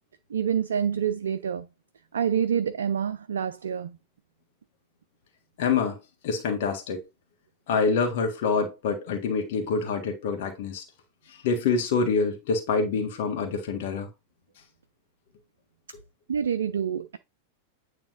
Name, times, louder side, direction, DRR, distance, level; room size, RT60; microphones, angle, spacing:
voice 1, 0.3-1.7 2.1-4.0 16.3-17.2, right 8 dB, 65° right, 0.4 m, -27 dB
voice 2, 5.6-6.0 6.2-7.0 7.7-10.8 11.3-14.1, left 5 dB, 50° left, 1.6 m, -26 dB
9.0 x 3.3 x 3.7 m
figure-of-eight pair, 90°, 0 cm